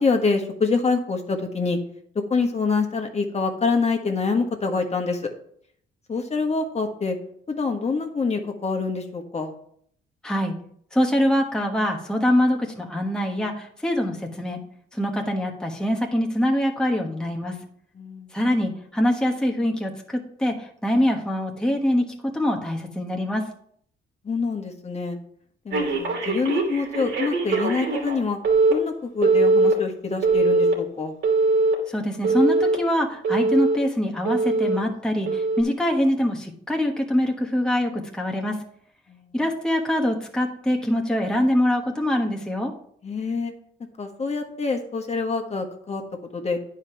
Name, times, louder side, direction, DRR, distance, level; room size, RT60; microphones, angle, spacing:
voice 1, 0.0-1.8 2.3-5.3 6.1-7.2 7.5-9.5 17.9-18.3 24.2-25.2 25.6-28.4 28.7-31.1 39.1-39.3 43.0-43.5 44.0-46.0 46.3-46.6, left 4 dB, 35° left, 4 dB, 1.5 m, -26 dB
voice 2, 10.2-10.5 10.9-14.6 14.9-17.6 18.3-22.0 22.3-23.4 31.9-38.6 39.3-42.7, left 1 dB, 5° left, 1 dB, 1.3 m, -24 dB
Telephone, 25.7-28.2 28.4-28.7 29.2-29.7 30.2-30.7 31.2-31.7 32.2-32.7 33.2-33.8 34.2-34.8 35.3-35.6, right 3 dB, 70° right, 2.7 m, -21 dB
9.5 x 4.9 x 5.8 m, 0.64 s
cardioid pair, 90°, 20 cm